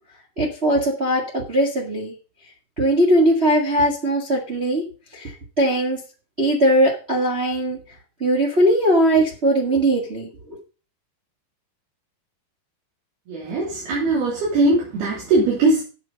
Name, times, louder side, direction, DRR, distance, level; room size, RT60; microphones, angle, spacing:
voice 1, 0.4-2.1 2.8-4.9 5.1-6.0 6.4-7.8 8.2-10.6, right 1 dB, 45° right, -1 dB, 0.8 m, -20 dB
voice 2, 13.3-15.8, right 2 dB, 80° right, -5 dB, 5.0 m, -20 dB
8.5 x 7.7 x 5.2 m, 0.34 s
omnidirectional pair, 4.5 m